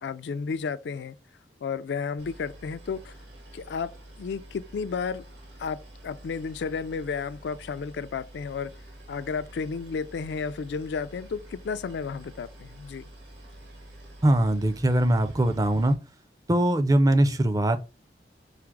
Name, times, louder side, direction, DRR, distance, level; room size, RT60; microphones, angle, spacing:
voice 1, 0.0-1.2 1.6-3.1 3.5-5.2 5.6-5.8 6.0-8.7 9.1-13.0, left 5 dB, 70° left, 0.3 m, -32 dB
Boat Water vehicle, 2.2-15.9, right 1 dB, 75° right, 1.8 m, -48 dB
voice 2, 14.2-16.0 16.5-17.8, right 1 dB, 20° right, 0.4 m, -21 dB
4.8 x 2.0 x 4.5 m
head